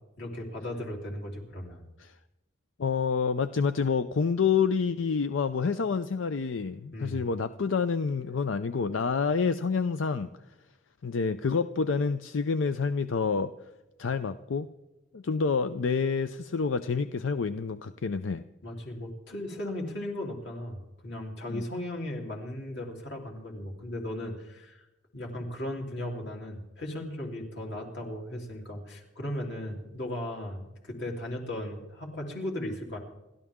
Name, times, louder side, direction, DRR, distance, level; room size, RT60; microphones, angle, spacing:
voice 1, 0.2-1.8 6.9-7.2 18.6-24.8 25.1-33.0, left 1 dB, 60° left, -1 dB, 3.4 m, -36 dB
voice 2, 2.8-10.3 11.0-13.5 14.0-14.7 15.1-18.4 21.5-21.6, left 5 dB, 90° left, 12 dB, 0.5 m, -28 dB
29.0 x 12.5 x 3.7 m, 1.0 s
head